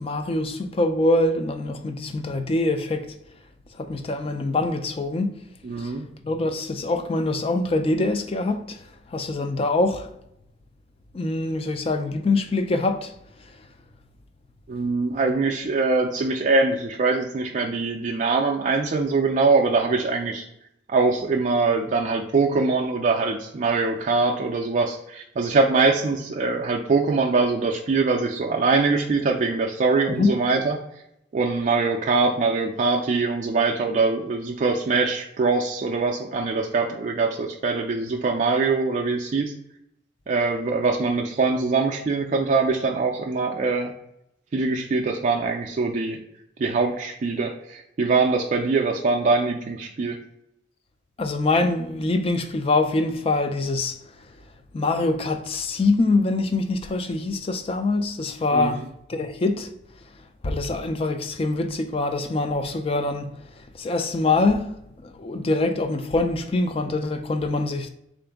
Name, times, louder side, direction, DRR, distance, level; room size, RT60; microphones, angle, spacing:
voice 1, 0.0-3.1 3.8-5.4 5.8-5.9 6.2-8.8 9.1-10.1 11.1-13.1 30.1-30.3 51.2-54.0 54.7-58.8 59.1-59.7 60.4-63.3 63.8-64.8 65.0-67.9, left 2 dB, 30° left, 0.4 m, -24 dB
voice 2, 5.6-6.1 14.7-20.4 20.9-30.8 31.3-39.5 40.3-43.9 44.5-46.2 46.6-50.2 58.5-58.8, right 3 dB, 40° right, 0.3 m, -23 dB
3.8 x 2.5 x 3.4 m
head